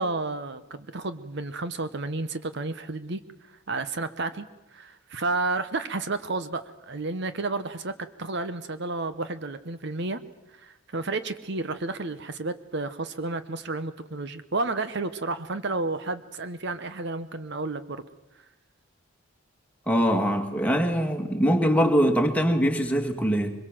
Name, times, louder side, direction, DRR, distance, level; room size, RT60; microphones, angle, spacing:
voice 1, 0.0-4.5 4.7-7.9 8.2-10.2 10.6-18.0, right 3 dB, 55° right, 12 dB, 1.0 m, -31 dB
voice 2, 19.9-23.5, equal, 5° left, 3 dB, 2.1 m, -23 dB
24.0 x 22.0 x 7.6 m, 0.95 s
head